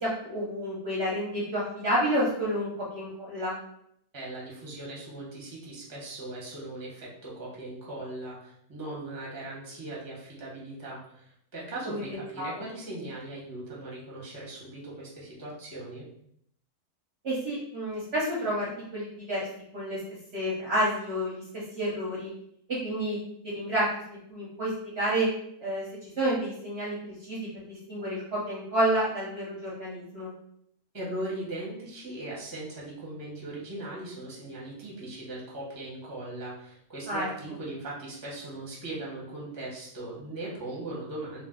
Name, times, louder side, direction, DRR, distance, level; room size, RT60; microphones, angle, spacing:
voice 1, 0.0-3.6 11.9-12.0 12.4-12.5 17.2-19.4 19.7-20.0 20.3-21.4 21.8-22.3 22.8-23.2 23.5-23.9 24.3-25.3 25.6-27.4 27.7-30.3 37.1-37.3, right 1 dB, 55° right, -5 dB, 0.8 m, -29 dB
voice 2, 4.1-16.1 30.9-41.4, right 2 dB, 20° right, -5 dB, 0.6 m, -39 dB
2.4 x 2.3 x 3.6 m, 0.71 s
omnidirectional pair, 1.6 m